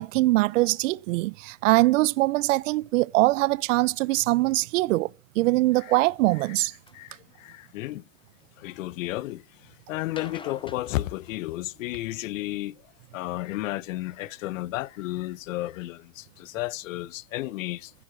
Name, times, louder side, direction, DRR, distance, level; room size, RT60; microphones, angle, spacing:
voice 1, 0.0-5.1 5.4-6.7, right 20 dB, 70° right, 0.6 m, -22 dB
voice 2, 6.9-8.0 8.6-12.8 13.1-17.9, left 17 dB, 75° left, 0.9 m, -33 dB
sound 1, 6.9-7.0 7.7-8.4 10.0-12.0 13.5-14.1 14.8-14.9 15.5-15.6 15.9-16.0 16.2-16.3, left 4 dB, 10° left, 1.2 m, -48 dB
15.0 x 8.7 x 4.6 m
supercardioid pair, 120°, 39 cm